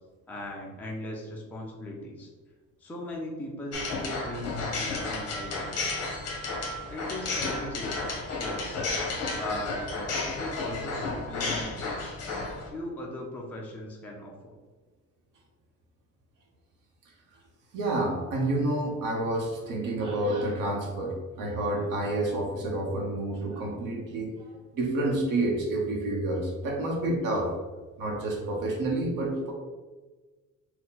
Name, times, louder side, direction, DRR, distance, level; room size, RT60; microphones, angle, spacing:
voice 1, 0.3-2.3 2.8-5.9 6.9-8.0 8.4-8.8 9.2-12.1 12.7-14.6, left 1 dB, 5° left, -2 dB, 0.5 m, -38 dB
sound 1, 3.7-12.7, left 3 dB, 50° left, 1.0 m, -32 dB
voice 2, 17.7-24.3 24.7-27.5 28.0-29.5, right 1 dB, 80° right, -1 dB, 0.9 m, -29 dB
4.4 x 2.2 x 3.9 m, 1.3 s
cardioid pair, 165°, 32 cm